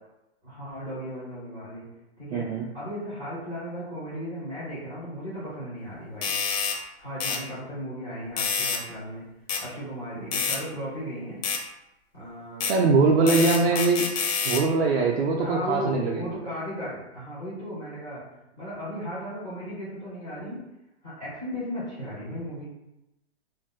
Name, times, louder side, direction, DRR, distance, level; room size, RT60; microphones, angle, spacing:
voice 1, 0.4-1.9 2.2-6.3 7.0-9.3 9.6-11.4 12.1-12.8 13.2-13.4 13.7-13.8 15.4-18.2 18.6-20.6 21.0-22.7, equal, 5° left, -15 dB, 0.3 m, -36 dB
voice 2, 2.3-2.7 12.6-14.0 14.4-16.2, right 3 dB, 60° right, -1 dB, 0.5 m, -22 dB
sound 1, 6.2-6.8 7.2-7.4 8.4-8.8 9.5-9.6 10.3-10.6 11.4-11.6 12.6-12.8 13.3-14.6, left 5 dB, 60° left, 0.6 m, -27 dB
2.6 x 2.1 x 3.5 m, 0.92 s
hypercardioid pair, 165°, 35 cm